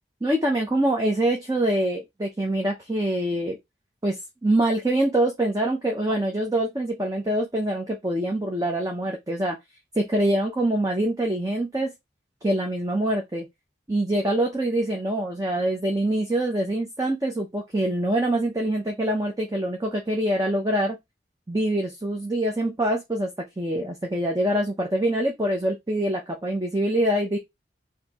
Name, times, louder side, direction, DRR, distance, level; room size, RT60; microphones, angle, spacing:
voice 1, 0.2-3.6 4.0-9.6 9.9-11.9 12.4-13.5 13.9-21.0 21.5-23.3 23.6-27.4, right 1 dB, 20° right, 0.7 m, -25 dB
4.4 x 2.8 x 3.6 m
head